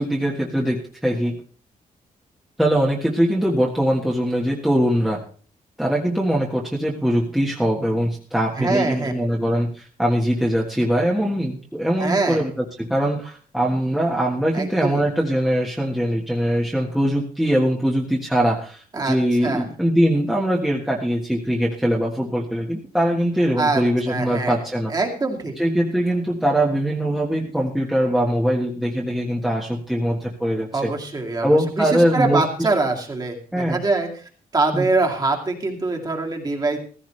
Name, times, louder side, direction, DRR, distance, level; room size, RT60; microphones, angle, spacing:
voice 1, 0.0-1.4 2.6-5.2 5.8-24.9 25.6-30.9 31.4-32.4 33.5-33.8 34.7-34.9, equal, ahead, -3 dB, 1.5 m, -22 dB
voice 2, 8.6-9.1 12.0-12.5 14.5-15.0 18.9-19.2 19.4-19.6 23.6-24.5 24.9-25.6 30.7-36.8, right 3 dB, 25° right, 2 dB, 2.4 m, -24 dB
15.5 x 15.0 x 3.3 m, 0.42 s
wide cardioid pair, 155°, 15 cm